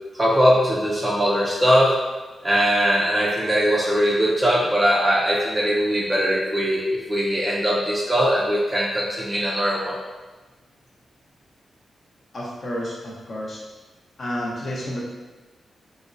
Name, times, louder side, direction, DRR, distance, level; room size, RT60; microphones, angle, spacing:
voice 1, 0.1-2.0 2.4-10.0, equal, 15° right, -4 dB, 0.4 m, -21 dB
voice 2, 12.3-13.6 14.2-15.0, equal, 40° left, -4 dB, 0.7 m, -30 dB
4.9 x 2.0 x 2.5 m, 1.2 s
wide cardioid pair, 175°, 0 cm